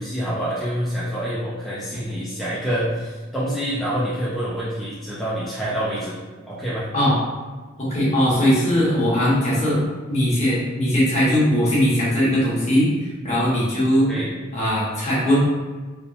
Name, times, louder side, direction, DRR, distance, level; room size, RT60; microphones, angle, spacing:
voice 1, 0.0-6.2 6.5-6.8 14.1-14.3, equal, ahead, -10 dB, 0.4 m, -26 dB
voice 2, 7.8-9.8 10.1-14.1 14.5-15.4, equal, 35° left, -8 dB, 0.9 m, -20 dB
2.8 x 2.0 x 2.6 m, 1.3 s
head